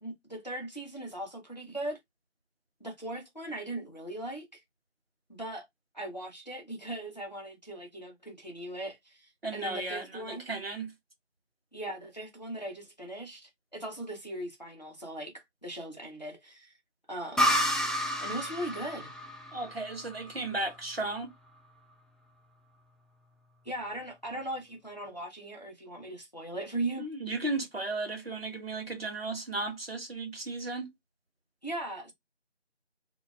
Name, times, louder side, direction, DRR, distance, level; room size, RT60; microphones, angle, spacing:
voice 1, 0.0-2.0 2.8-4.6 5.3-5.7 5.9-10.5 11.7-16.8 17.1-17.6 18.2-19.1 23.6-27.1 31.6-32.1, right 1 dB, 40° left, 0.6 m, -39 dB
voice 2, 9.4-10.9 19.5-21.3 27.0-30.9, right 2 dB, 55° right, 0.8 m, -35 dB
sound 1, 17.4-20.9, equal, ahead, 0.3 m, -30 dB
2.4 x 2.2 x 2.3 m
figure-of-eight pair, 170°, 35 cm